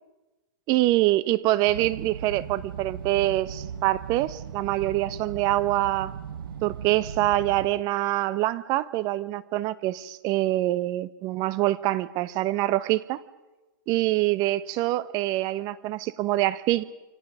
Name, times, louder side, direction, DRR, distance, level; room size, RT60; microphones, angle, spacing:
voice 1, 0.7-6.1 6.6-13.2 13.9-16.8, right 16 dB, 35° right, 16 dB, 1.1 m, -25 dB
sound 1, 1.6-7.7, right 8 dB, 75° right, 1.4 m, -38 dB
28.0 x 25.5 x 5.0 m, 1.1 s
hypercardioid pair, 140°, 12 cm